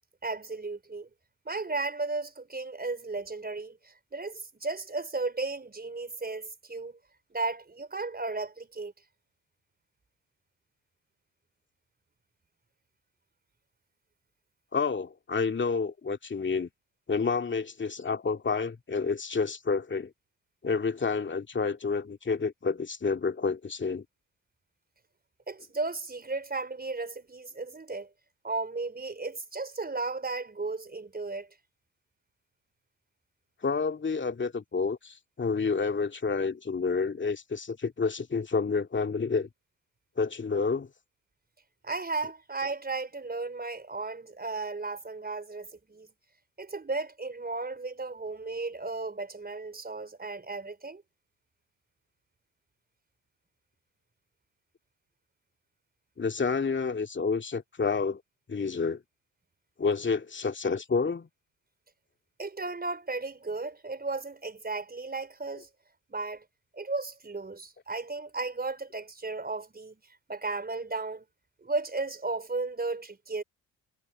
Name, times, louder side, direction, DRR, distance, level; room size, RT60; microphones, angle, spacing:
voice 1, 0.2-1.1 1.4-7.0 7.3-8.9 25.5-28.1 28.4-31.5 41.8-46.1 46.6-51.0 62.4-65.7 66.1-66.4 66.7-70.0 70.3-71.2 71.6-73.4, right 3 dB, 20° right, 4.5 m, -35 dB
voice 2, 14.7-16.7 17.1-20.1 20.6-24.0 33.6-39.5 40.2-40.9 56.2-58.2 58.5-59.0 59.8-61.3, left 4 dB, 25° left, 2.3 m, -29 dB
hypercardioid pair, 50°, 43 cm